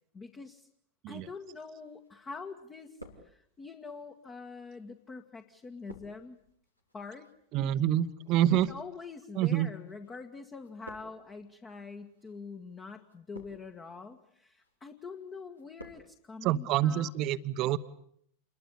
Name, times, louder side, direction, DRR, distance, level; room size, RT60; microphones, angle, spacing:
voice 1, 0.1-0.7 1.1-3.0 3.2-6.4 6.9-7.3 8.5-17.1, left 4 dB, 20° left, 5 dB, 1.8 m, -45 dB
sound 1, 1.8-2.4 2.7-3.8 4.5-10.1 10.4-11.4 12.1-12.4 13.0-13.9 14.3-14.7 15.1-16.1 16.3-16.4, equal, 85° left, 3.6 m, -53 dB
voice 2, 7.5-8.7 9.3-9.7 16.4-17.8, right 12 dB, 40° right, 14 dB, 1.1 m, -27 dB
28.5 x 22.0 x 8.5 m, 0.69 s
figure-of-eight pair, 90°, 0 cm